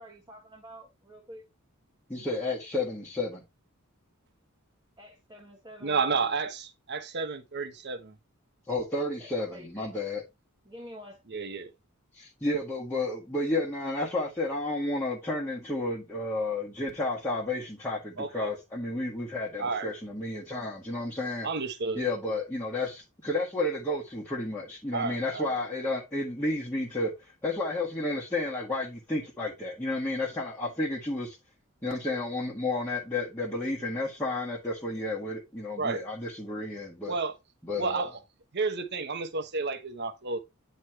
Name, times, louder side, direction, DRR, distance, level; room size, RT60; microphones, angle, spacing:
voice 1, 0.0-1.4 5.0-6.1 9.2-9.9 10.7-11.2, equal, 20° right, 1.4 m, -48 dB
voice 2, 2.1-3.4 8.7-10.2 12.1-21.5 21.9-31.4 31.8-37.2 37.6-38.1, left 2 dB, 10° left, 1.5 m, -31 dB
voice 3, 5.8-8.2 11.3-11.7 18.2-18.5 19.6-19.9 21.4-22.0 24.9-25.5 35.8-36.0 37.1-37.3 37.8-38.1 38.5-40.4, right 4 dB, 55° right, 1.0 m, -31 dB
9.5 x 3.2 x 4.5 m
head